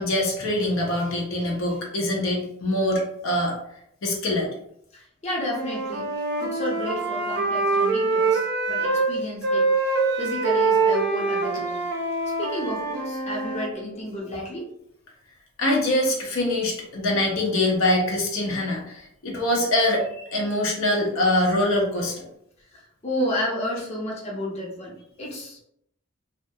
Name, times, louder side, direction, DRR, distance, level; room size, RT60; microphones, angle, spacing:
voice 1, 0.0-3.6 4.0-4.5 15.6-22.2, left 1 dB, 75° left, -1 dB, 0.5 m, -24 dB
voice 2, 4.9-6.1 6.4-11.8 12.4-14.7 22.7-25.6, equal, 35° left, -4 dB, 0.7 m, -31 dB
Wind instrument woodwind instrument, 5.5-9.1 9.4-13.7, right 3 dB, 55° right, 0.4 m, -24 dB
2.3 x 2.0 x 2.6 m, 0.74 s
head